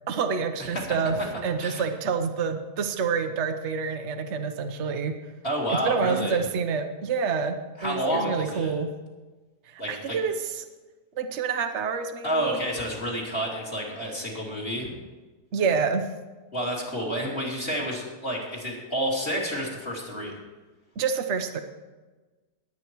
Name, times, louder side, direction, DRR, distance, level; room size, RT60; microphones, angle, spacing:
voice 1, 0.1-1.2 1.4-5.2 5.7-7.6 7.8-8.9 9.7-10.6 11.1-12.6 15.5-16.1 21.0-21.6, right 5 dB, 50° right, 6 dB, 1.2 m, -27 dB
voice 2, 0.7-1.8 5.4-6.4 7.8-8.7 9.8-10.2 12.2-14.9 16.5-20.3, equal, 35° left, -2 dB, 3.5 m, -30 dB
20.5 x 8.7 x 4.7 m, 1.2 s
omnidirectional pair, 1.7 m